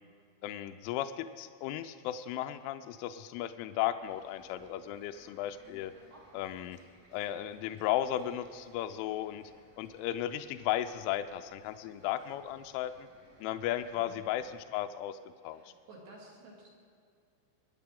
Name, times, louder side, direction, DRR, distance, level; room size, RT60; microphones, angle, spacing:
voice 1, 0.4-5.9 6.3-6.8 7.1-9.4 9.8-13.1 13.4-15.2 15.4-15.6, left 12 dB, 85° left, 8 dB, 2.9 m, -35 dB
sound 1, 4.0-14.6, equal, 25° right, 2.2 m, -61 dB
voice 2, 13.9-14.3 15.4-16.7, right 2 dB, 60° right, -3 dB, 4.5 m, -53 dB
23.0 x 9.9 x 3.7 m, 2.3 s
omnidirectional pair, 5.8 m